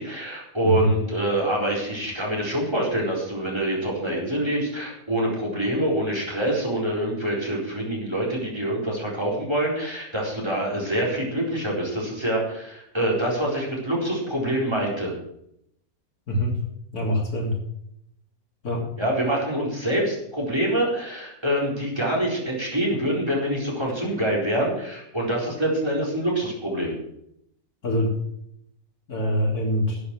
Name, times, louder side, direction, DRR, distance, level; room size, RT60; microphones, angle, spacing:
voice 1, 0.0-15.1 19.0-26.9, right 1 dB, 15° right, -2 dB, 4.4 m, -25 dB
voice 2, 16.3-16.6 16.9-17.6 18.6-18.9 27.8-28.2 29.1-30.0, equal, 85° left, -1 dB, 3.7 m, -24 dB
12.0 x 8.6 x 7.7 m, 0.76 s
omnidirectional pair, 1.5 m